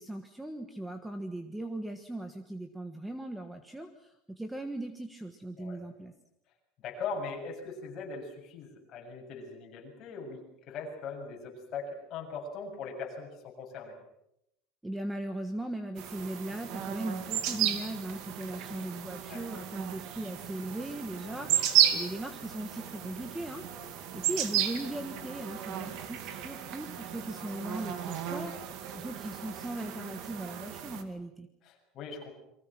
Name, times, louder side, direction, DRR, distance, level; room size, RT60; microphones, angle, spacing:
voice 1, 0.0-6.1 14.8-31.5, right 1 dB, 5° right, 7 dB, 1.3 m, -39 dB
voice 2, 6.8-10.4 10.7-13.9 19.3-19.5 21.5-21.6 31.6-32.3, left 4 dB, 35° left, 0 dB, 7.2 m, -40 dB
sound 1, 16.0-31.0, right 10 dB, 50° right, 2.5 m, -33 dB
30.0 x 23.5 x 6.2 m, 0.81 s
cardioid pair, 170°, 0 cm